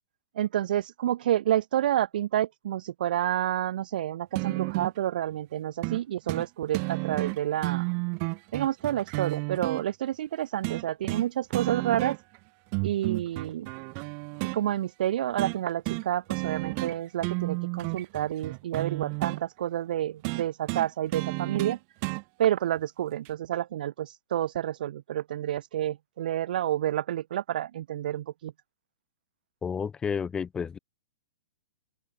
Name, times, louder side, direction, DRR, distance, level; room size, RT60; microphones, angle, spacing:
voice 1, 0.3-7.9 8.5-12.2 12.8-13.7 14.5-21.8 22.4-28.5, right 12 dB, 60° right, 1.3 m, -29 dB
sound 1, 4.3-5.0 5.8-6.0 6.3-6.5 6.7-9.8 10.6-11.3 11.5-12.4 12.7-14.6 15.4-15.6 15.8-16.0 16.3-16.9 17.2-19.4 20.2-22.2 23.2-23.3, right 40 dB or more, 40° right, 1.0 m, -31 dB
voice 2, 29.6-30.8, left 6 dB, 15° left, 1.4 m, -31 dB
hypercardioid pair, 130°, 5 cm